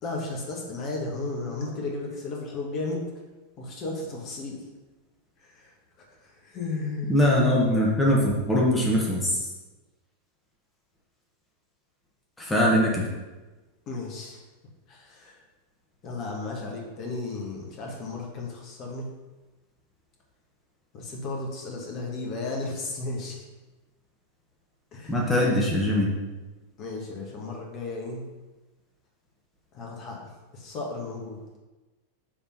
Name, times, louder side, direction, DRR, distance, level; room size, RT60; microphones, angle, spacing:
voice 1, 0.0-3.0 3.6-4.6 5.4-7.2 13.9-14.4 14.9-15.4 16.0-19.1 20.9-23.4 24.9-25.3 26.8-28.2 29.7-30.2 30.5-31.4, left 3 dB, 35° left, -1 dB, 1.6 m, -34 dB
voice 2, 7.1-9.4 12.4-13.0 25.1-26.1, left 1 dB, 10° left, -4 dB, 1.4 m, -22 dB
6.8 x 3.7 x 5.7 m, 1.2 s
figure-of-eight pair, 90°, 0 cm